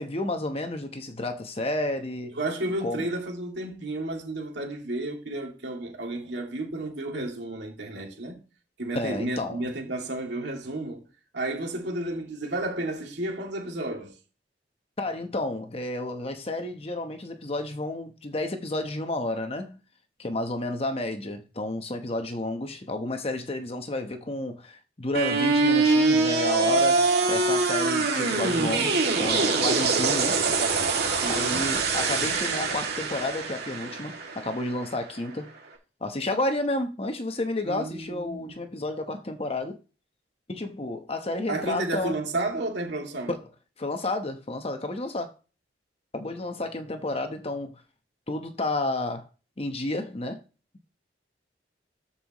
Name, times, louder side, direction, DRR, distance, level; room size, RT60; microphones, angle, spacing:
voice 1, 0.0-2.4 2.8-3.0 8.9-9.6 15.0-19.8 20.2-30.8 31.3-35.5 36.0-39.8 40.5-42.2 43.3-43.4 43.8-45.3 46.1-47.8 48.3-49.2 49.6-50.4, left 2 dB, 35° left, 1.0 m, -31 dB
voice 2, 2.4-8.4 8.8-11.0 11.3-14.1 31.1-31.6 37.6-38.6 41.5-43.3, right 2 dB, 80° right, 2.4 m, -32 dB
sound 1, 25.1-35.2, right 3 dB, 65° right, 2.3 m, -24 dB
13.5 x 5.6 x 3.0 m
head